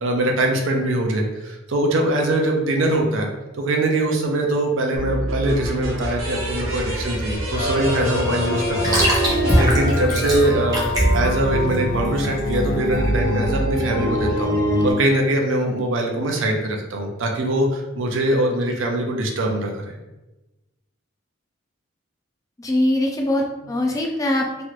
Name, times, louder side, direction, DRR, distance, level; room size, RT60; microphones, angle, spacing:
voice 1, 0.0-3.3 3.6-9.1 9.6-14.6 14.8-20.0, right 1 dB, 65° right, 2 dB, 0.5 m, -22 dB
sound 1, 4.9-10.6, right 1 dB, 85° right, 1.0 m, -28 dB
sound 2, 6.3-13.0, equal, 20° right, 0.8 m, -24 dB
sound 3, 7.5-14.9, equal, 60° left, 1.0 m, -23 dB
voice 2, 22.6-24.6, left 1 dB, 15° left, 1 dB, 0.3 m, -22 dB
3.0 x 2.4 x 3.0 m, 1.0 s
head